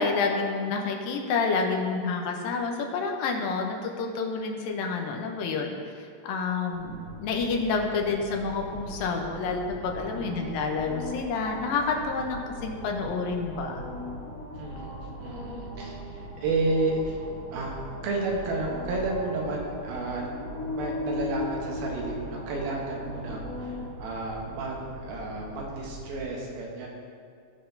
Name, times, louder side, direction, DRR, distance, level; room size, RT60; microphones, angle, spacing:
voice 1, 0.0-5.8 6.2-13.8, left 4 dB, 80° left, 2 dB, 2.6 m, -29 dB
sound 1, 6.7-26.2, left 1 dB, 55° left, 0.9 m, -38 dB
voice 2, 10.2-10.5 14.5-14.9 15.2-17.2 17.5-17.7 18.0-26.9, right 2 dB, 85° right, -1 dB, 3.1 m, -32 dB
17.0 x 5.8 x 2.7 m, 2.2 s
omnidirectional pair, 4.2 m